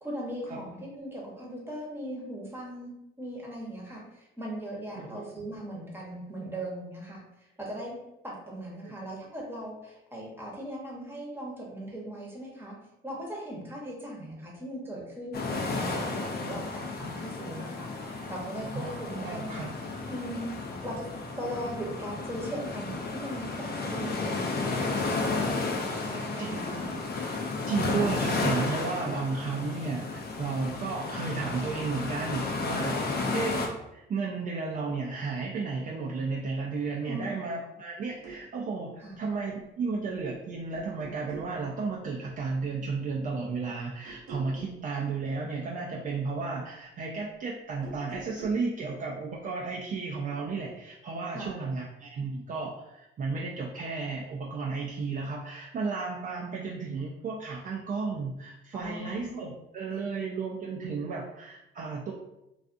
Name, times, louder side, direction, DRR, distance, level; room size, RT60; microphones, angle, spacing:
voice 1, 0.0-8.0 8.2-12.8 13.0-19.7 20.1-20.5 20.8-21.1 21.4-26.9 33.1-33.3 37.1-37.3 39.0-39.1 51.3-51.6 58.7-59.5 59.9-60.0, right 1 dB, 10° right, -3 dB, 0.9 m, -39 dB
sound 1, 15.3-33.7, left 3 dB, 55° left, 0.5 m, -33 dB
voice 2, 18.7-19.7 26.4-26.8 27.7-62.1, right 4 dB, 45° right, -2 dB, 0.4 m, -33 dB
sound 2, 38.0-38.5 40.0-40.4 40.7-41.6 44.0-44.8 47.7-48.7, right 3 dB, 90° right, 0.8 m, -45 dB
2.4 x 2.3 x 2.5 m, 0.88 s
cardioid pair, 90°, 20 cm